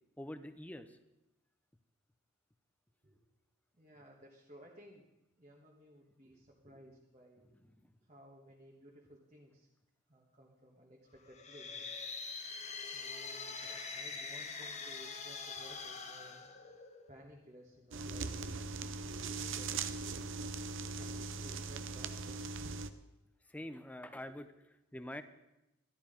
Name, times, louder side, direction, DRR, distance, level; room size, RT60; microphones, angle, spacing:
voice 1, 0.2-1.0 23.5-24.5 24.9-25.2, left 1 dB, 5° left, 11 dB, 0.6 m, -45 dB
voice 2, 3.7-5.1 5.4-7.6 8.0-9.7 10.1-12.0 12.9-16.5 17.1-18.8 19.0-20.4 21.0-22.5 24.3-24.4, equal, 30° right, -2 dB, 1.4 m, -57 dB
sound 1, 11.3-17.2, left 4 dB, 30° left, 1.1 m, -44 dB
sound 2, 17.9-22.9, right 4 dB, 55° right, 0.6 m, -40 dB
13.0 x 11.5 x 5.1 m, 0.94 s
head